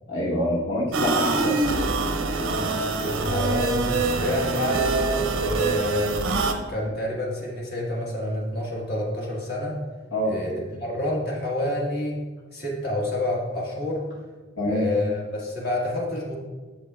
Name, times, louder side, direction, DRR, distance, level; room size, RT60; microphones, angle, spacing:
voice 1, 0.1-1.6 10.1-10.3 14.6-14.9, left 1 dB, 70° left, -6 dB, 1.1 m, -26 dB
sound 1, 0.9-6.5, right 3 dB, 90° right, 0.7 m, -25 dB
voice 2, 3.0-6.1 6.7-9.8 10.3-12.2 12.5-14.1 14.7-16.4, left 1 dB, 50° left, -3 dB, 1.5 m, -28 dB
8.3 x 7.1 x 2.3 m, 1.4 s
head